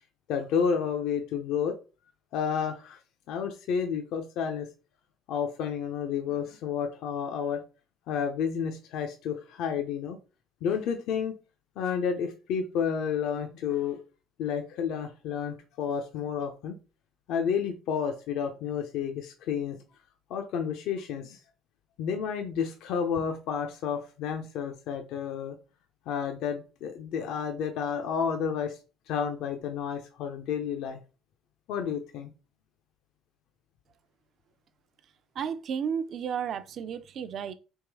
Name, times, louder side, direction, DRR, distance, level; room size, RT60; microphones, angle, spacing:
voice 1, 0.3-1.8 2.3-3.0 3.3-4.7 5.3-7.6 8.1-10.2 10.6-11.4 11.8-14.0 14.4-16.8 17.3-19.8 20.3-21.4 22.0-25.5 26.1-28.8 29.1-31.0 31.7-32.3, left 7 dB, 70° left, 0.6 m, -31 dB
voice 2, 35.4-37.5, right 7 dB, 50° right, 0.5 m, -32 dB
3.6 x 3.0 x 4.7 m
cardioid pair, 130°, 0 cm